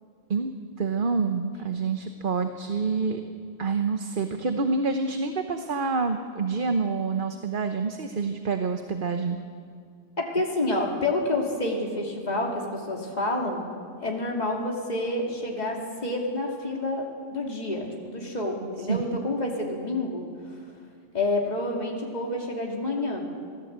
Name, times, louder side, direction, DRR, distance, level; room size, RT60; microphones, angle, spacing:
voice 1, 0.8-3.2 3.6-9.4 18.9-19.0, right 4 dB, 55° right, 6 dB, 1.2 m, -27 dB
voice 2, 10.2-13.7 14.0-20.3 21.1-23.2, left 2 dB, 40° left, -1 dB, 2.9 m, -28 dB
25.0 x 17.0 x 8.1 m, 2.2 s
omnidirectional pair, 1.1 m